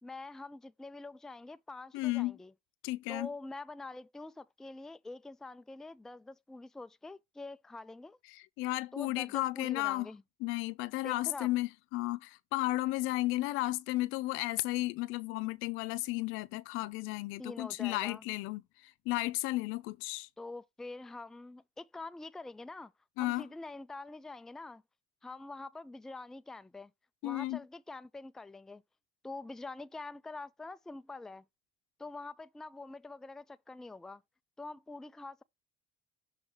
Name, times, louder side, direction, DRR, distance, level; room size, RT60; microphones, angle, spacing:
voice 1, 0.0-2.5 3.1-8.2 8.9-10.2 11.0-11.6 17.4-18.2 20.4-22.9 23.2-24.8 25.2-26.9 27.2-28.8 29.2-31.4 32.0-34.2 34.6-35.4, left 3 dB, ahead, 0.3 m, -45 dB
voice 2, 1.9-2.4 2.8-3.3 8.3-10.1 10.4-18.6 19.1-20.3 23.2-23.5 27.2-27.6, left 18 dB, 75° left, 0.6 m, -33 dB
6.4 x 3.3 x 5.8 m
cardioid pair, 105°, 21 cm